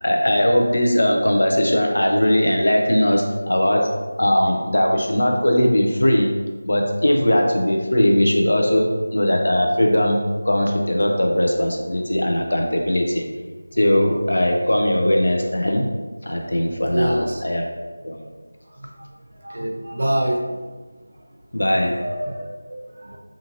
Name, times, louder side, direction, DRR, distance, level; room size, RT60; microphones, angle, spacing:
voice 1, 0.0-6.3 6.7-13.3 13.8-15.9 16.2-17.7 18.0-18.2 21.5-22.0, left 1 dB, 80° left, 2 dB, 0.5 m, -19 dB
voice 2, 16.9-17.4 19.4-20.4 22.0-23.2, right 1 dB, 60° right, 0 dB, 0.5 m, -25 dB
2.5 x 2.5 x 2.8 m, 1.4 s
figure-of-eight pair, 175°, 0 cm